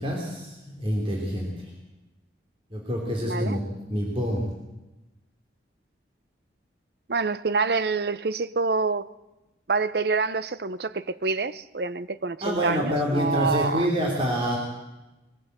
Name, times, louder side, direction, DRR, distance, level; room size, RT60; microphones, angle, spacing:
voice 1, 0.0-1.7 2.7-3.6 3.9-4.4 12.4-14.6, equal, 30° right, 3.2 m, -27 dB
voice 2, 3.2-3.6 7.1-9.1 9.7-13.9, right 4 dB, 60° right, 0.7 m, -27 dB
21.0 x 15.5 x 8.0 m
head